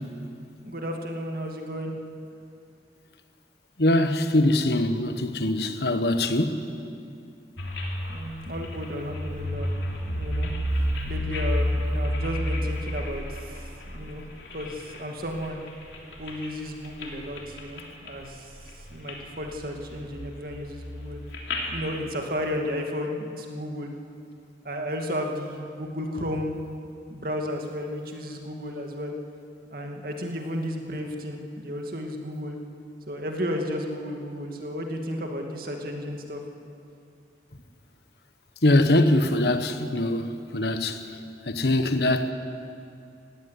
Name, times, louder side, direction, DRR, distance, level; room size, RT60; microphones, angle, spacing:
voice 1, 0.6-1.9 8.1-9.7 10.1-10.5 10.8-13.6 13.9-14.2 14.5-15.6 16.2-18.5 18.9-21.2 21.7-23.9 24.6-26.6 27.1-29.1 29.7-32.6 33.1-36.4, equal, 55° right, 2.4 m, -33 dB
voice 2, 3.8-6.6 38.6-41.0 41.5-42.3, left 1 dB, 65° left, 1.2 m, -22 dB
sound 1, 7.6-15.0 15.4-16.5 16.8-17.1 17.4-18.3 18.6-19.1 19.5-21.8, equal, 90° left, 3.4 m, -30 dB
18.5 x 16.0 x 9.5 m
head